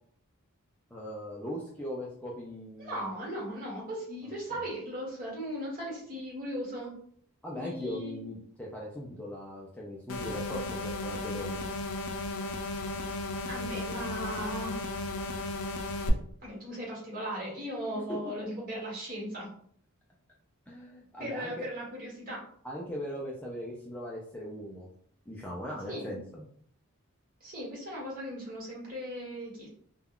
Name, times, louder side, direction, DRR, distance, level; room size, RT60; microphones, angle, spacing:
voice 1, 0.9-3.1 4.2-4.6 7.4-11.7 17.9-18.5 20.7-21.7 22.6-24.9 25.3-26.4, equal, 5° left, -4 dB, 0.4 m, -39 dB
voice 2, 2.8-7.0 7.5-8.2 13.5-14.8 16.4-19.5 21.2-22.5 25.9-26.1 27.4-29.7, equal, 40° right, -4 dB, 1.2 m, -37 dB
sound 1, 10.1-16.1, left 2 dB, 70° left, 0.4 m, -35 dB
2.3 x 2.1 x 3.5 m, 0.62 s
head